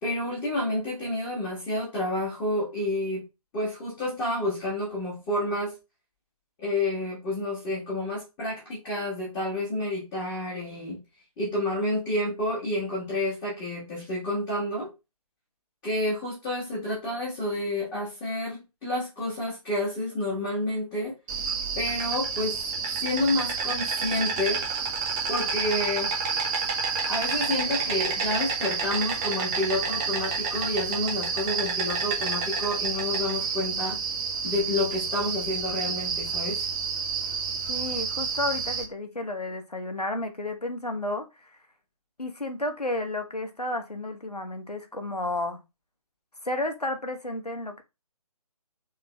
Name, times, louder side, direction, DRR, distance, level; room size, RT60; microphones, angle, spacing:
voice 1, 0.0-3.2 3.5-5.7 6.6-11.0 11.4-14.9 15.8-21.1 21.7-22.6 23.0-24.7 25.3-26.1 27.1-34.0 34.4-36.6, left 1 dB, 10° left, -6 dB, 1.5 m, -29 dB
Insect, 21.3-38.8, right 5 dB, 10° right, 0.5 m, -29 dB
voice 2, 37.7-41.6 42.2-45.6 46.4-47.8, left 1 dB, 85° left, 6 dB, 1.2 m, -32 dB
3.8 x 3.6 x 3.4 m, 0.26 s
figure-of-eight pair, 145°, 20 cm